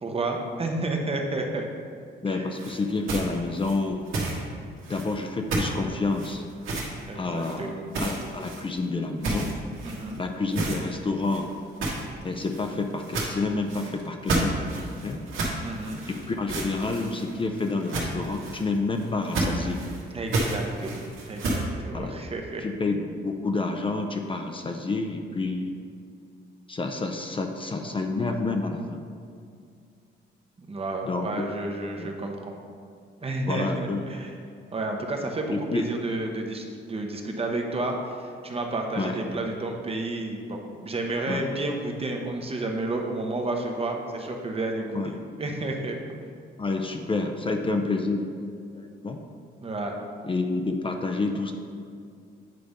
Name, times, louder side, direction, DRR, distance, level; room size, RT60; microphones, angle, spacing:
voice 1, 0.0-1.6 2.3-2.5 7.1-7.8 9.8-10.2 15.6-16.0 20.1-22.6 30.6-32.5 33.2-34.3 34.7-46.0 49.6-50.0, right 2 dB, 30° right, 2 dB, 0.9 m, -31 dB
voice 2, 2.2-4.1 4.9-6.4 7.1-7.7 8.0-9.5 10.2-11.5 12.2-14.5 14.9-15.2 16.3-19.8 21.9-22.2 22.6-25.8 26.7-29.0 31.0-31.5 32.0-32.1 33.5-34.0 35.5-35.9 39.0-39.2 41.3-41.5 44.9-45.1 46.6-48.3 48.7-49.2 50.2-51.5, left 3 dB, 25° left, 3 dB, 0.6 m, -29 dB
sound 1, 2.5-4.4 4.8-5.2 5.5-5.8 6.1-7.0 7.4-7.6 7.9-8.8 9.2-10.2 10.5-10.8 11.2-21.6, right 2 dB, 85° right, 1.6 m, -31 dB
9.3 x 3.3 x 5.2 m, 2.3 s
cardioid pair, 90°, 20 cm